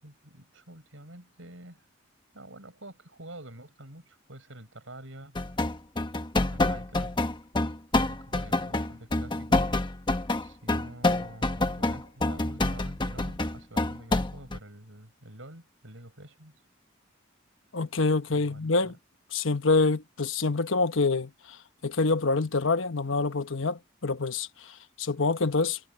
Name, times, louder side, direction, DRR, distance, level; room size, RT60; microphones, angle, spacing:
voice 1, 0.0-1.9 2.3-5.4 6.5-7.1 8.0-9.7 10.4-16.5 18.3-19.0, right 1 dB, 75° right, 7.5 m, -47 dB
sound 1, 5.4-14.6, left 2 dB, 25° left, 1.1 m, -27 dB
voice 2, 17.7-18.9 19.3-25.8, left 3 dB, 80° left, 1.1 m, -26 dB
head